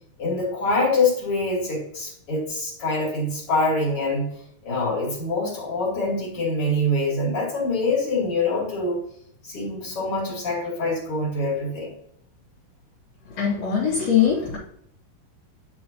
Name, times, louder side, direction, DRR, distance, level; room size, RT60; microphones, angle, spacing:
voice 1, 0.2-4.3 4.6-9.0 9.4-11.9, left 2 dB, 40° left, -4 dB, 3.4 m, -25 dB
voice 2, 13.4-14.6, left 8 dB, 65° left, -5 dB, 3.3 m, -21 dB
10.5 x 4.6 x 3.0 m, 0.69 s
omnidirectional pair, 4.3 m